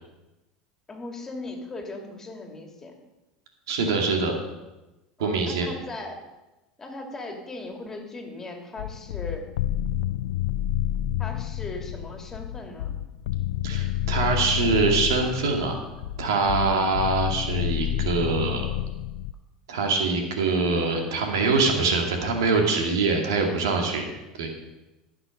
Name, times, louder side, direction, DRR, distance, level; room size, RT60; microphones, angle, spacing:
voice 1, 0.9-2.9 5.2-6.2 6.8-9.5 11.2-12.9 14.4-14.5 16.6-16.9, left 2 dB, 20° left, 2 dB, 2.6 m, -38 dB
voice 2, 3.7-4.3 5.2-5.7 13.6-15.8 16.2-18.6 19.7-24.1 24.4-24.5, right 4 dB, 85° right, 3 dB, 2.0 m, -24 dB
sound 1, 8.8-19.3, left 12 dB, 80° left, 0.4 m, -29 dB
15.5 x 6.1 x 5.2 m, 1.0 s
hypercardioid pair, 95°, 2 cm